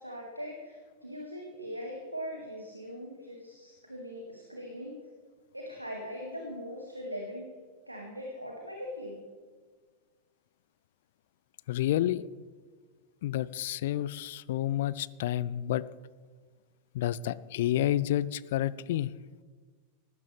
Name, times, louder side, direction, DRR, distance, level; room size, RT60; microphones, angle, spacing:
voice 1, 0.0-5.0 5.5-7.5 7.9-9.2, equal, 85° right, 1 dB, 2.0 m, -41 dB
voice 2, 11.7-12.3 13.2-15.8 16.9-19.1, left 13 dB, 55° left, 20 dB, 0.4 m, -29 dB
19.0 x 15.0 x 3.4 m, 1.5 s
figure-of-eight pair, 90°, 0 cm